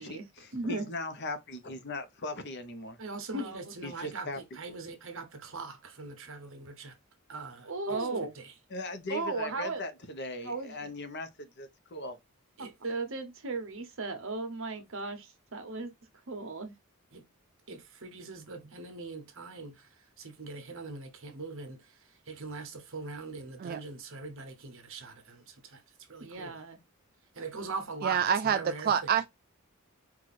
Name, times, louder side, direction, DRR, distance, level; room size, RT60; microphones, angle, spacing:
voice 1, 0.0-3.0 3.8-4.6 8.7-12.2, left 2 dB, 55° left, 1.0 m, -39 dB
voice 2, 0.5-0.9 3.0-4.3 4.6-6.9 7.3-8.6 9.1-9.8 10.4-10.7 12.6-15.9 16.3-16.7 17.1-17.2 17.7-19.8 20.2-21.8 22.3-25.8 26.1-26.8 27.3-29.1, right 3 dB, 65° right, 1.1 m, -38 dB
voice 3, 28.0-29.3, right 8 dB, 45° right, 0.3 m, -27 dB
4.7 x 2.6 x 4.1 m
head